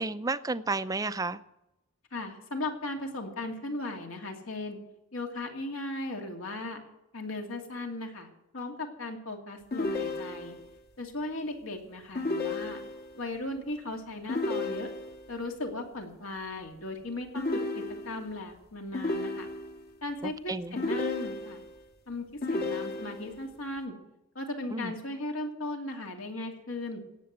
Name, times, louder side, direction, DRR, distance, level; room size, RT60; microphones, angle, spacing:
voice 1, 0.0-1.4 20.2-20.8 24.7-24.9, right 3 dB, 15° right, 13 dB, 0.5 m, -32 dB
voice 2, 2.1-4.8 5.1-6.8 7.1-8.3 8.5-10.5 11.0-12.8 13.1-14.9 15.3-19.5 20.0-21.6 22.1-23.9 24.3-27.0, left 2 dB, 70° left, 3 dB, 2.6 m, -37 dB
sound 1, 9.7-10.7 12.2-13.2 14.3-15.3 17.4-18.4 18.9-19.9 20.8-21.8 22.4-23.4, left 2 dB, 50° left, 1.7 m, -33 dB
17.5 x 7.8 x 8.0 m, 0.92 s
head